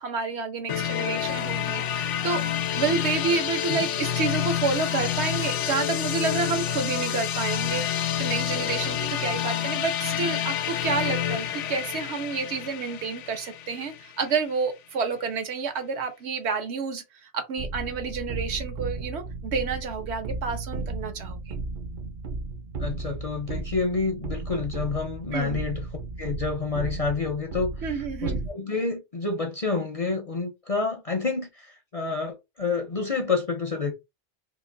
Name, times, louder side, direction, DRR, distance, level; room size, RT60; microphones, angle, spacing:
voice 1, 0.0-2.4 2.8-21.5 25.3-25.6 27.8-28.4, right 5 dB, 70° right, 1.0 m, -29 dB
sound 1, 0.7-14.4, left 10 dB, 85° left, 0.9 m, -28 dB
sound 2, 17.6-28.5, right 3 dB, 50° right, 0.6 m, -34 dB
voice 2, 22.8-25.8 26.2-33.9, left 4 dB, 45° left, 0.5 m, -29 dB
3.0 x 2.5 x 3.7 m
omnidirectional pair, 1.2 m